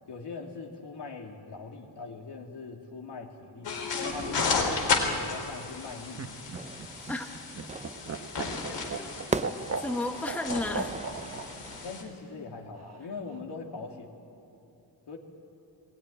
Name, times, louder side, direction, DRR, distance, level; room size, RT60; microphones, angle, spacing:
voice 1, 0.1-3.7 4.1-6.3 11.8-14.1 15.1-15.2, left 4 dB, 70° left, 1 dB, 2.7 m, -41 dB
sound 1, 3.6-12.0, left 4 dB, 90° left, 3.6 m, -33 dB
Laughter, 5.8-11.5 12.7-13.4, right 4 dB, 40° right, 1.2 m, -37 dB
Fire / Fireworks, 6.6-12.1, right 3 dB, 15° right, 0.5 m, -39 dB
voice 2, 9.5-11.0, left 2 dB, 5° left, 6 dB, 0.9 m, -33 dB
20.0 x 18.5 x 10.0 m, 2.7 s
wide cardioid pair, 135°, 42 cm